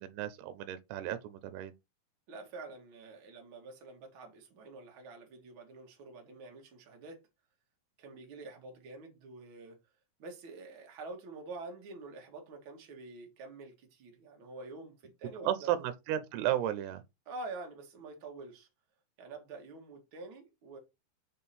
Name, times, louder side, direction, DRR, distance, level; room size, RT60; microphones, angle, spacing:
voice 1, 0.0-1.7 15.5-17.0, right 12 dB, 85° right, 2.7 m, -33 dB
voice 2, 2.3-7.2 8.0-9.8 10.2-15.7 17.2-18.7 19.2-20.8, right 3 dB, 50° right, 1.5 m, -47 dB
6.8 x 3.7 x 4.2 m
omnidirectional pair, 4.7 m